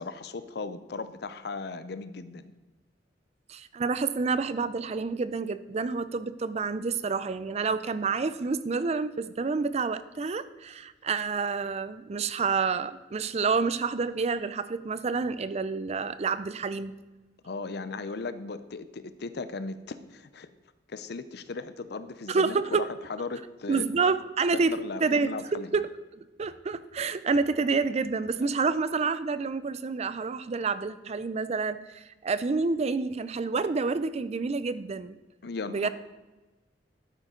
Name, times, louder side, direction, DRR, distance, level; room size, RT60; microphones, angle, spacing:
voice 1, 0.0-2.5 17.4-20.5 20.9-22.8 23.1-23.9 24.5-25.7 28.4-28.5 35.4-35.9, left 3 dB, 65° left, 13 dB, 0.6 m, -37 dB
voice 2, 3.5-16.9 22.3-22.9 23.7-24.7 25.0-25.9 26.1-35.2 35.7-35.9, right 4 dB, 35° right, 14 dB, 0.4 m, -28 dB
12.0 x 9.2 x 3.8 m, 1.1 s
head